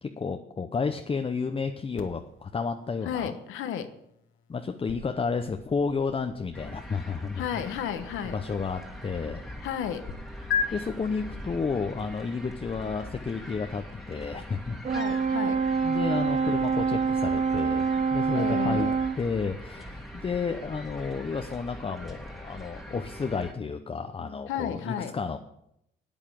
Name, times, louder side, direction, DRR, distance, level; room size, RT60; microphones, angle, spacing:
voice 1, 0.0-3.3 4.5-7.4 8.2-9.4 10.7-14.8 15.8-18.9 19.2-25.4, left 5 dB, 30° left, 6 dB, 0.7 m, -31 dB
sound 1, 2.0-10.1 10.5-10.7, left 6 dB, 75° left, 1.4 m, -38 dB
voice 2, 3.0-3.9 7.4-8.4 9.6-10.0 14.9-15.6 18.3-18.9 24.5-25.2, left 9 dB, 90° left, 9 dB, 1.1 m, -32 dB
sound 2, 6.5-23.5, equal, ahead, 1.9 m, -42 dB
Brass instrument, 14.8-19.2, right 5 dB, 35° right, 0.5 m, -26 dB
9.0 x 8.6 x 7.6 m, 0.78 s
cardioid pair, 90°, 20 cm